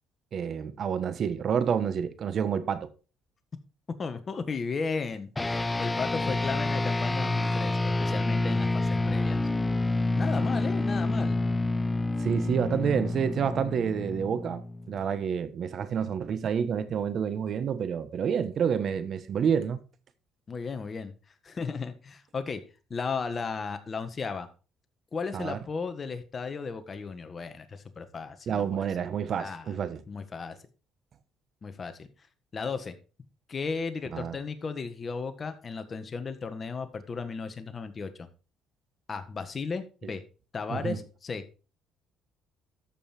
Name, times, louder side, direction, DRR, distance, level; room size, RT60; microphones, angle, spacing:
voice 1, 0.3-2.9 12.2-19.8 25.3-25.6 28.5-30.0 34.1-34.4 40.7-41.0, right 7 dB, 50° right, 1.2 m, -29 dB
voice 2, 4.0-9.4 10.1-11.4 20.5-21.1 21.4-22.6 22.9-24.5 25.1-28.6 29.4-29.8 30.1-30.6 31.6-32.1 32.5-33.0 33.5-38.3 39.1-40.2 40.5-41.6, left 5 dB, 30° left, 1.5 m, -35 dB
sound 1, 5.4-15.1, left 2 dB, 15° left, 0.6 m, -28 dB
13.5 x 5.5 x 4.3 m
cardioid pair, 110°, 0 cm